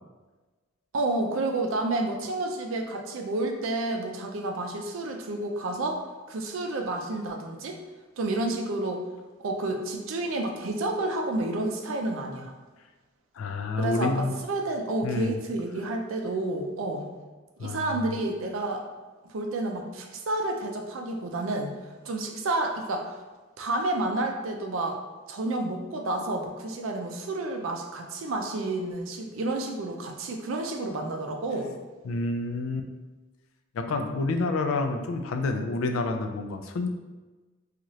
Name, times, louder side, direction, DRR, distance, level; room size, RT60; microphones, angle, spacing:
voice 1, 0.9-6.0 6.3-7.8 8.2-9.0 9.4-12.5 13.8-17.1 17.6-18.8 19.2-21.7 22.0-23.1 23.6-25.0 25.3-31.7, right 2 dB, 85° right, 3 dB, 0.4 m, -30 dB
voice 2, 13.4-14.3 15.0-15.4 17.6-18.0 32.0-32.9 33.7-36.9, left 3 dB, 90° left, 5 dB, 0.3 m, -28 dB
3.0 x 2.4 x 2.7 m, 1.2 s
head